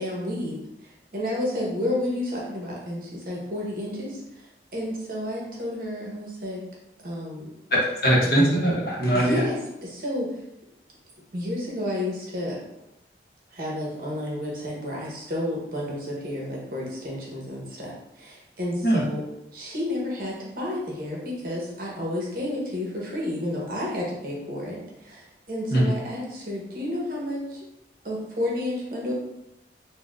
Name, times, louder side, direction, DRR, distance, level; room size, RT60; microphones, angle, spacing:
voice 1, 0.0-4.2 4.7-6.6 7.0-7.5 9.1-10.3 11.3-12.6 13.5-19.2 19.5-27.6 28.0-29.1, left 1 dB, 50° right, -4 dB, 0.9 m, -31 dB
voice 2, 7.7-9.4 18.8-19.0 25.7-25.9, right 1 dB, 55° left, -3 dB, 0.7 m, -21 dB
4.2 x 2.1 x 2.4 m, 0.88 s
head